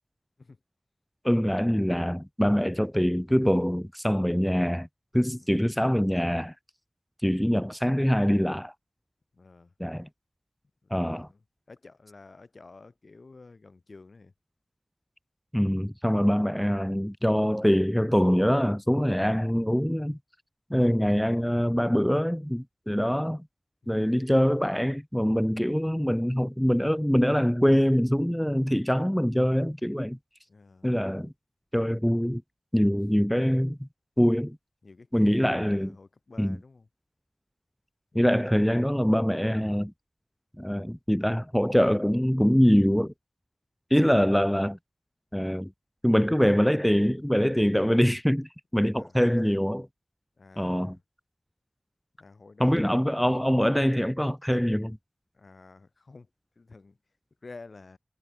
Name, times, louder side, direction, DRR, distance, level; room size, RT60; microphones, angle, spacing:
voice 1, 1.2-4.9 5.1-6.5 7.2-8.7 9.8-10.1 10.9-11.3 15.5-20.2 20.7-23.4 23.9-30.2 30.8-31.3 31.7-32.4 32.7-33.9 34.2-34.6 35.1-36.0 36.4-36.6 38.1-39.9 40.6-43.1 43.9-44.8 45.3-45.7 46.0-49.9 50.6-51.0 52.6-55.0, equal, 5° left, 1.8 m, -24 dB
voice 2, 9.3-9.7 10.8-11.4 11.7-14.3 30.5-30.9 34.8-36.9 38.1-38.3 49.0-49.2 50.4-51.0 52.2-53.0 55.3-56.3 56.5-57.0 57.4-58.0, left 3 dB, 70° left, 6.6 m, -50 dB
cardioid pair, 40°, 0 cm